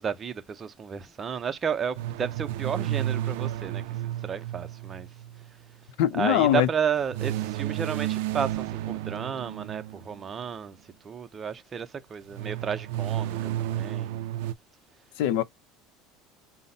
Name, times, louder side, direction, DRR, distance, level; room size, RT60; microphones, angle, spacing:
voice 1, 0.0-14.2, right 7 dB, 20° right, 0.5 m, -33 dB
sound 1, 1.9-5.5 7.1-10.2 12.3-14.5, right 13 dB, 90° right, 0.4 m, -32 dB
voice 2, 6.0-6.7 15.2-15.4, left 11 dB, 75° left, 0.5 m, -22 dB
5.6 x 2.0 x 3.8 m
cardioid pair, 170°, 0 cm